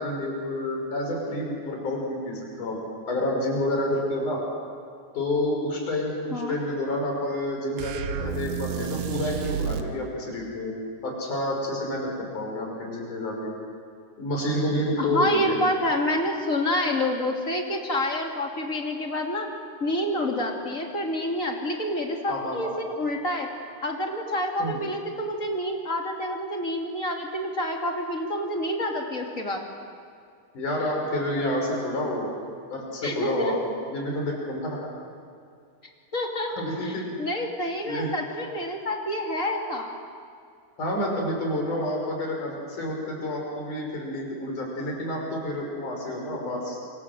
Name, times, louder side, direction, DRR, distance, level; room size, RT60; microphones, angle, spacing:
voice 1, 0.0-2.8 3.1-4.4 5.1-10.7 11.0-13.5 14.2-15.6 22.3-22.7 24.6-24.8 30.5-32.3 32.7-33.6 33.9-34.9 36.6-37.0 37.9-38.1 40.8-46.8, left 1 dB, 75° left, 0 dB, 6.9 m, -29 dB
sound 1, 7.8-9.9, right 8 dB, 70° right, 2.4 m, -31 dB
voice 2, 15.0-19.5 19.8-23.5 23.8-29.7 33.0-33.5 36.1-36.5 36.8-39.9, left 1 dB, 25° left, 1 dB, 2.8 m, -28 dB
27.5 x 25.0 x 7.8 m, 2.3 s
omnidirectional pair, 3.6 m